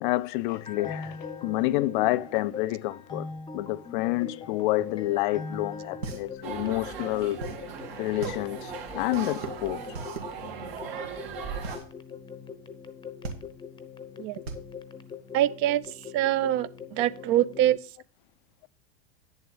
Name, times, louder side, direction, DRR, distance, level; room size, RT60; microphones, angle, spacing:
voice 1, 0.0-3.3 3.5-7.5 8.0-9.8, left 18 dB, 55° left, 0.4 m, -28 dB
sound 1, 0.5-17.8, left 5 dB, 15° left, 0.7 m, -42 dB
sound 2, 5.6-15.9, right 4 dB, 85° right, 1.7 m, -40 dB
sound 3, 6.4-11.8, right 7 dB, 70° right, 2.4 m, -38 dB
voice 2, 15.3-15.8 16.1-17.8, right 13 dB, 45° right, 0.5 m, -24 dB
8.9 x 7.0 x 3.8 m
hypercardioid pair, 100°, 31 cm